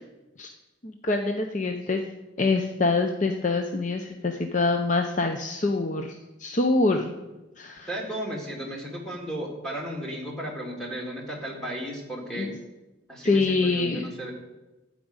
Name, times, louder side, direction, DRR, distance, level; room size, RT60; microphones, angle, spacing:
voice 1, 0.8-2.0 2.4-7.1 7.6-7.9 12.3-12.5 13.2-14.1, left 3 dB, 40° left, 4 dB, 0.6 m, -25 dB
voice 2, 7.9-12.5 13.1-14.3, equal, 5° left, -1 dB, 2.2 m, -34 dB
12.5 x 5.1 x 8.8 m, 1.1 s
head